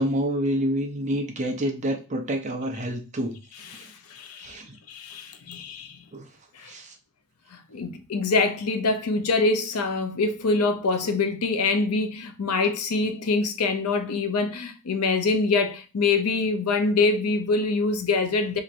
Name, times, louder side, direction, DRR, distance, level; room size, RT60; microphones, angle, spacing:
voice 1, 0.0-3.3 4.4-4.7 6.1-6.2 6.6-6.9, right 1 dB, 35° right, 0.7 m, -27 dB
voice 2, 3.7-4.6 4.9-6.0 6.5-6.7 7.5-18.6, left 3 dB, 85° left, 0.6 m, -25 dB
4.3 x 2.9 x 2.5 m
head